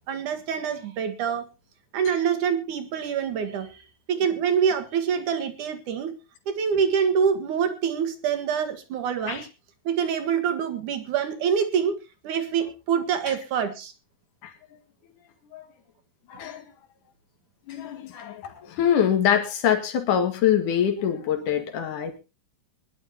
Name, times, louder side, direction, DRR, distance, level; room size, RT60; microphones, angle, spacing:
voice 1, 0.1-1.5 1.9-3.8 4.1-6.2 6.5-9.5 9.8-12.0 12.2-13.9, right 7 dB, 65° right, 7 dB, 3.1 m, -25 dB
voice 2, 16.3-16.7 17.7-22.2, left 9 dB, 65° left, 5 dB, 3.4 m, -24 dB
22.5 x 11.5 x 2.9 m, 0.29 s
omnidirectional pair, 4.0 m